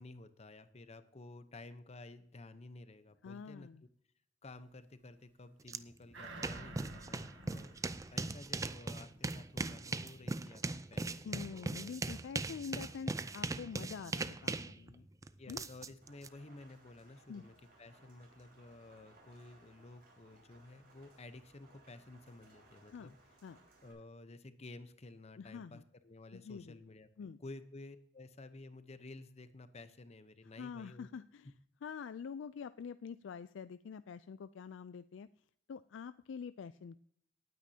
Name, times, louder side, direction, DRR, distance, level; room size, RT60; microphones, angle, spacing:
voice 1, 0.0-3.7 4.4-7.8 8.1-10.6 10.9-11.9 15.4-23.2 23.8-31.1, left 2 dB, 35° left, 11 dB, 0.8 m, -53 dB
voice 2, 3.2-3.8 7.1-7.5 11.2-15.1 15.5-15.7 17.3-17.4 22.9-23.1 23.4-23.6 25.4-25.8 26.3-26.8 27.2-27.4 30.6-31.5 31.8-35.3 35.7-37.0, left 6 dB, 80° left, 13 dB, 0.4 m, -46 dB
sound 1, 5.7-5.8 6.1-16.3, right 3 dB, 15° right, 0.4 m, -39 dB
sound 2, 6.1-9.0 9.4-9.5, right 3 dB, 80° right, 1.7 m, -52 dB
Rain, 16.0-23.9, right 2 dB, 55° right, 5.5 m, -64 dB
18.5 x 9.4 x 2.8 m, 0.68 s
head